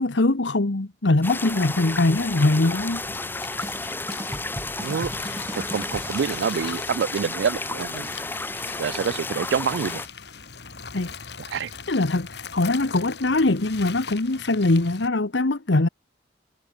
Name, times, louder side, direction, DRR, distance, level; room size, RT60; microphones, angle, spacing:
voice 1, 0.0-3.0 10.9-11.1 11.9-15.9, left 2 dB, 85° left, 1.3 m, -22 dB
sound 1, 1.2-10.1, left 2 dB, 10° left, 1.2 m, -32 dB
sound 2, 2.0-15.1, left 6 dB, 65° left, 2.5 m, -41 dB
sound 3, 3.6-6.7, right 1 dB, 20° right, 3.3 m, -38 dB
voice 2, 5.7-8.1 8.8-10.0 11.5-11.7, right 7 dB, 80° right, 0.4 m, -26 dB
head